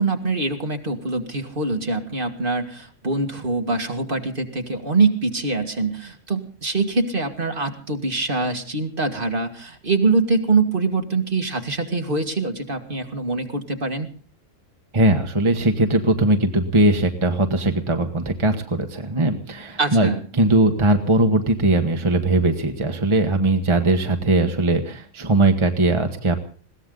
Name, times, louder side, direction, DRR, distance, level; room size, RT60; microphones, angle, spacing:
voice 1, 0.0-14.1 19.8-20.2, right 3 dB, 45° right, 5 dB, 2.0 m, -24 dB
voice 2, 14.9-26.4, right 2 dB, 25° right, 5 dB, 1.3 m, -20 dB
21.5 x 17.0 x 3.9 m, 0.41 s
omnidirectional pair, 1.3 m